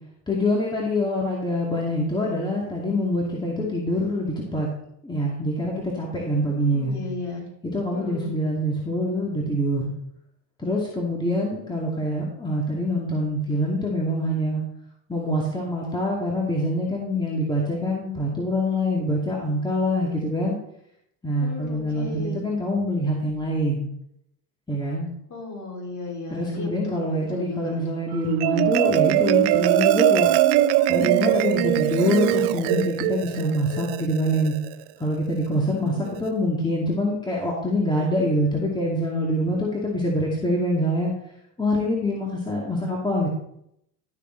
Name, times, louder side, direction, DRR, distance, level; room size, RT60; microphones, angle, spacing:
voice 1, 0.3-4.7 5.0-7.0 7.6-9.9 10.6-14.6 15.1-20.6 21.2-23.9 24.7-25.1 26.3-30.3 30.9-34.5 35.0-41.1 41.6-43.3, left 1 dB, 10° left, -3 dB, 2.4 m, -25 dB
voice 2, 6.4-7.4 7.9-8.3 21.4-22.4 25.3-27.8 35.6-36.3, left 3 dB, 40° left, -1 dB, 4.5 m, -35 dB
Marimba xylophone, 28.1-34.7, right 14 dB, 60° right, 0.6 m, -21 dB
12.5 x 6.6 x 4.0 m, 0.76 s
supercardioid pair, 95°, 45 cm